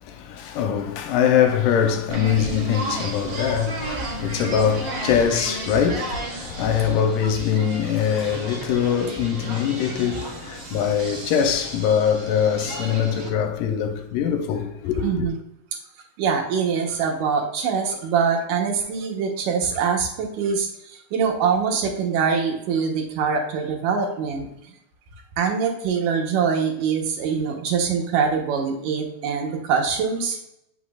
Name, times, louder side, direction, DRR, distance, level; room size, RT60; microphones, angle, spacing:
voice 1, 0.0-15.3, left 8 dB, 85° left, 2.3 m, -23 dB
sound 1, 2.1-13.3, right 2 dB, 50° right, 2.5 m, -34 dB
voice 2, 15.0-15.3 16.2-20.7 21.1-24.5 25.4-30.4, right 6 dB, 80° right, 2.6 m, -23 dB
8.2 x 5.6 x 2.4 m
omnidirectional pair, 3.8 m